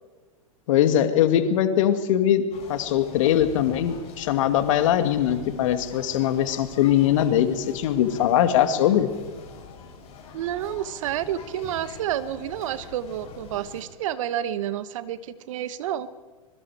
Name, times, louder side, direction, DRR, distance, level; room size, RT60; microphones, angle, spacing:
voice 1, 0.7-2.4 2.7-9.1, left 10 dB, 60° left, 9 dB, 2.1 m, -21 dB
sound 1, 2.5-13.8, left 5 dB, 35° left, 7.1 m, -43 dB
voice 2, 10.3-16.1, right 11 dB, 65° right, 14 dB, 1.2 m, -29 dB
25.0 x 21.5 x 4.8 m, 1.4 s
hypercardioid pair, 105°, 18 cm